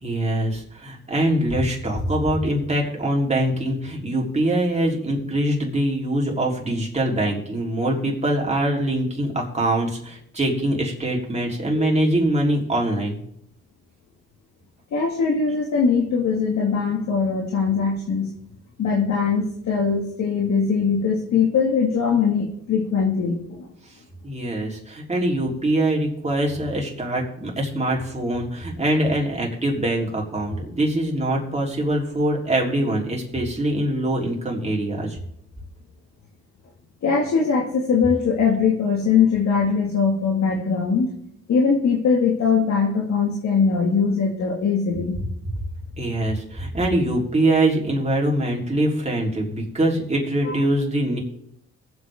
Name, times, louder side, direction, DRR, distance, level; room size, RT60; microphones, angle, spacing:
voice 1, 0.0-13.2 24.2-35.2 46.0-51.2, right 1 dB, 20° right, -2 dB, 3.7 m, -23 dB
voice 2, 14.9-18.3 18.8-23.7 37.0-41.1 41.5-45.2 50.4-50.6, left 5 dB, 65° left, -1 dB, 2.0 m, -21 dB
21.0 x 8.0 x 3.7 m, 0.71 s
cardioid pair, 90°, 30 cm